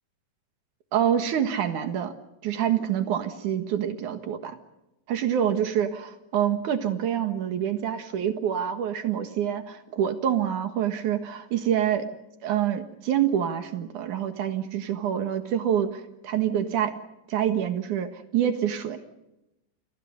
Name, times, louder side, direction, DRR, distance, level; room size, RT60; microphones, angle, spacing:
voice 1, 0.9-2.1 2.4-4.6 5.1-12.1 12.4-16.9 17.3-19.0, right 9 dB, 60° right, 8 dB, 2.5 m, -26 dB
30.0 x 25.5 x 5.3 m, 0.92 s
omnidirectional pair, 5.1 m